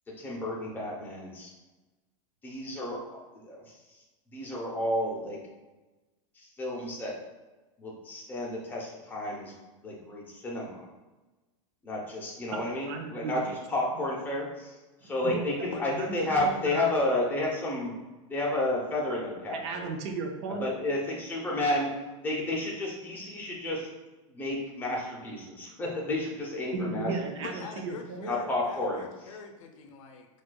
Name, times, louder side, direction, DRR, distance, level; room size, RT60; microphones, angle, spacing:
voice 1, 0.2-1.5 2.4-4.0 4.3-5.4 6.4-7.1 7.8-9.5 9.8-10.9 11.8-17.9 18.3-19.9 20.6-21.9 22.2-23.9 24.3-27.1 28.3-29.0, left 1 dB, 10° left, -4 dB, 0.7 m, -31 dB
voice 2, 12.9-13.6 15.0-15.4 15.9-17.0 19.5-20.7 26.7-28.4, right 4 dB, 55° right, 4 dB, 0.5 m, -35 dB
voice 3, 27.4-30.3, left 5 dB, 75° left, 3 dB, 0.6 m, -43 dB
4.3 x 2.4 x 2.2 m, 1.1 s
supercardioid pair, 145°, 17 cm